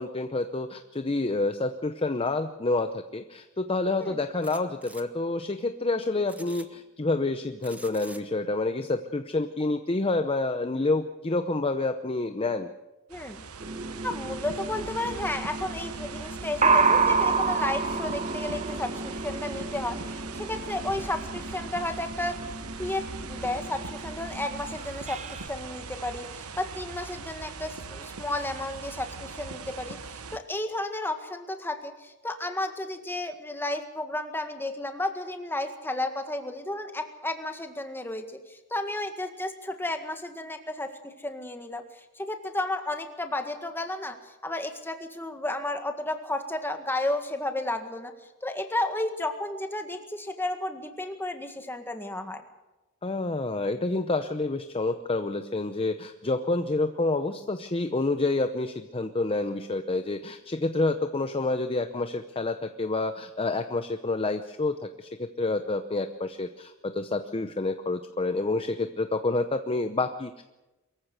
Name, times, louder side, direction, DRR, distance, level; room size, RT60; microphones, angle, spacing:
voice 1, 0.0-12.7 53.0-70.4, left 2 dB, 25° left, 8 dB, 0.8 m, -28 dB
sound 1, 4.4-5.0 6.3-6.7 7.6-8.2, right 2 dB, 5° right, 1.0 m, -47 dB
voice 2, 13.1-13.4 14.0-22.4 22.8-52.4, left 1 dB, 10° left, 6 dB, 1.8 m, -33 dB
sound 2, 13.1-30.4, right 4 dB, 75° right, 1.2 m, -41 dB
sound 3, 13.6-25.5, right 4 dB, 30° right, 1.0 m, -30 dB
23.0 x 15.0 x 8.1 m, 1.0 s
head